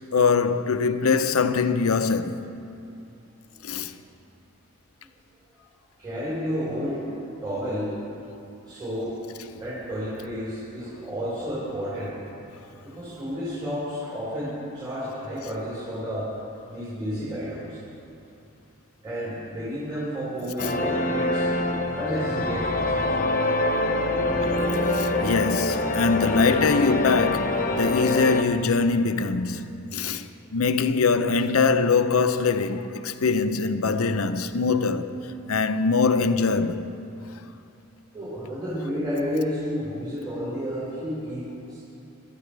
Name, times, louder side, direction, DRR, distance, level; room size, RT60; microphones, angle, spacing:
voice 1, 0.1-2.4 3.6-3.9 20.6-20.7 24.8-35.2 35.5-36.8, left 4 dB, 90° left, 0.7 m, -23 dB
voice 2, 6.0-7.9 8.7-9.1 9.6-12.1 12.8-16.3 16.7-17.8 19.0-23.1 38.1-41.8, equal, 20° right, 4.3 m, -31 dB
sound 1, 20.6-28.4, left 2 dB, 40° left, 1.0 m, -25 dB
26.0 x 13.0 x 3.4 m
head